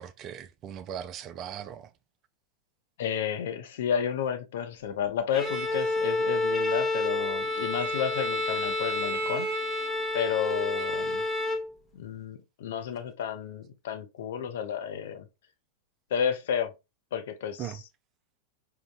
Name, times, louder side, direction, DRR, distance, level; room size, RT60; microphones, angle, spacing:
voice 1, 0.0-1.9 17.6-17.8, right 9 dB, 35° right, 0.3 m, -39 dB
voice 2, 3.0-9.5 10.1-11.2 11.9-15.3 16.1-16.7 17.1-17.7, left 8 dB, 55° left, 0.5 m, -31 dB
Bowed string instrument, 5.3-11.7, left 2 dB, 5° left, 0.7 m, -29 dB
3.7 x 2.1 x 2.4 m
figure-of-eight pair, 90°, 0 cm